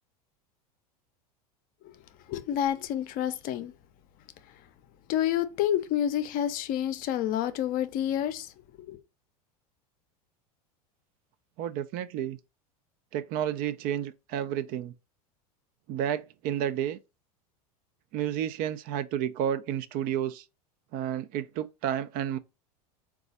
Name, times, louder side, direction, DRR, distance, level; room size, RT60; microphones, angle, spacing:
voice 1, 2.3-3.7 5.1-8.5 8.9-9.0, left 11 dB, 45° left, 0.6 m, -29 dB
voice 2, 11.6-12.4 13.1-14.9 15.9-17.0 18.1-20.4 20.9-22.4, right 10 dB, 50° right, 0.4 m, -31 dB
3.9 x 2.4 x 4.0 m
hypercardioid pair, 90°, 20 cm